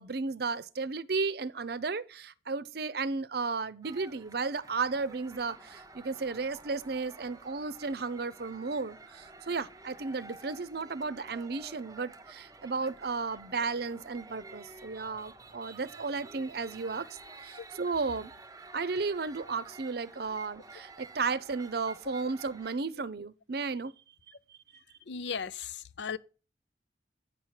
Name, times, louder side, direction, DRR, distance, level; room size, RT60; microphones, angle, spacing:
voice 1, 0.0-18.3 18.7-23.9 24.5-24.6, right 4 dB, 60° right, 0.7 m, -34 dB
sound 1, 3.8-22.7, right 3 dB, 20° right, 0.8 m, -51 dB
voice 2, 25.1-26.2, left 6 dB, 70° left, 0.6 m, -36 dB
9.1 x 5.9 x 6.4 m
head